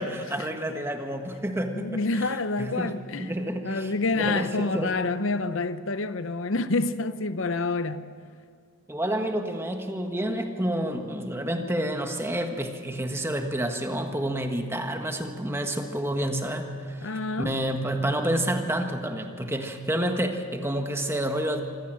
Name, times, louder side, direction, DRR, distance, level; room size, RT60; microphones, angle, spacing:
voice 1, 0.0-2.3 2.6-4.9 8.9-17.1 17.4-21.6, right 1 dB, 10° right, 1.5 m, -29 dB
voice 2, 1.7-3.3 3.6-8.1 17.0-17.5, left 3 dB, 65° left, 0.7 m, -28 dB
25.5 x 15.0 x 7.6 m
head